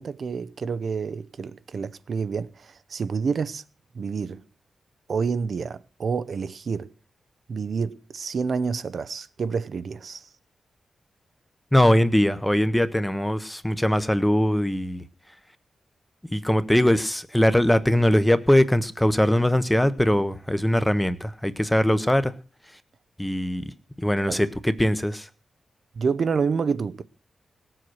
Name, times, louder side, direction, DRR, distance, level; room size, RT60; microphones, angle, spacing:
voice 1, 0.0-3.6 3.9-4.4 5.1-6.9 7.5-10.3 24.2-24.4 26.0-27.0, right 5 dB, 50° right, 0.6 m, -28 dB
voice 2, 11.7-15.0 16.3-22.3 23.2-23.6 24.0-25.3, left 1 dB, 5° left, 0.9 m, -21 dB
19.0 x 7.7 x 6.3 m
wide cardioid pair, 145°, 0 cm